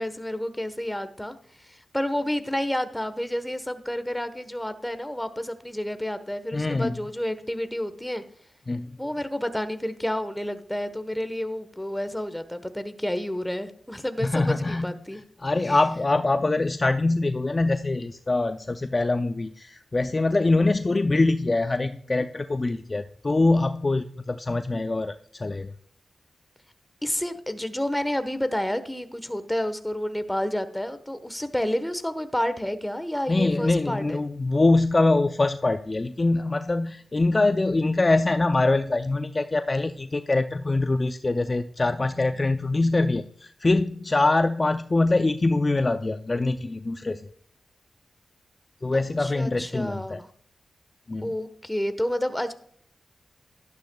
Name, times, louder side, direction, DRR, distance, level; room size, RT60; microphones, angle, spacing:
voice 1, 0.0-8.2 9.0-15.2 15.6-15.8 27.0-34.2 49.2-50.3 51.2-52.5, left 1 dB, 10° left, 10 dB, 1.1 m, -30 dB
voice 2, 6.5-7.0 8.7-9.0 14.2-25.7 33.3-47.3 48.8-50.2 51.1-51.3, left 2 dB, 35° left, 9 dB, 0.4 m, -24 dB
12.0 x 11.5 x 2.3 m, 0.62 s
cardioid pair, 65°, 0 cm